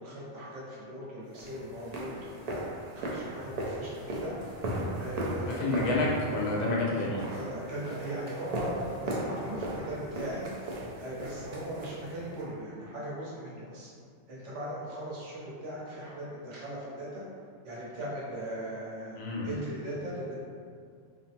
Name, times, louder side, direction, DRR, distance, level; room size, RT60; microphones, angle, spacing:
voice 1, 0.0-2.6 2.9-4.3 4.6-6.0 7.3-8.7 9.0-10.4 11.0-13.9 14.3-17.2 17.6-19.2 19.4-20.4, right 1 dB, 85° right, -7 dB, 1.1 m, -39 dB
sound 1, 1.3-12.5, right 1 dB, 65° right, 0.4 m, -37 dB
voice 2, 5.4-7.2 19.2-19.5, left 2 dB, 60° left, -4 dB, 0.4 m, -29 dB
3.1 x 2.0 x 2.7 m, 2.2 s
omnidirectional pair, 1.2 m